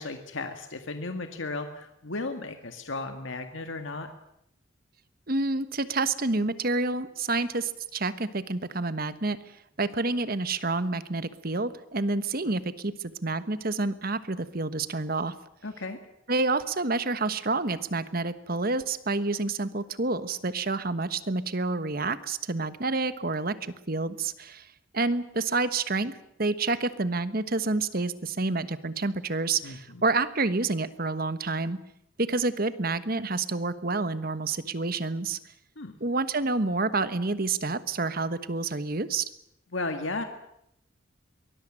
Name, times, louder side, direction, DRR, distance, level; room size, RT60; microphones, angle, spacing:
voice 1, 0.0-4.1 15.6-16.0 29.6-30.0 35.8-36.0 39.7-40.2, left 3 dB, 75° left, 6 dB, 1.9 m, -35 dB
voice 2, 5.3-9.4 9.8-15.3 16.3-23.6 23.9-24.7 24.9-31.8 32.2-35.4 36.0-39.3, right 3 dB, 45° right, 13 dB, 1.3 m, -28 dB
23.5 x 20.0 x 8.9 m, 0.77 s
head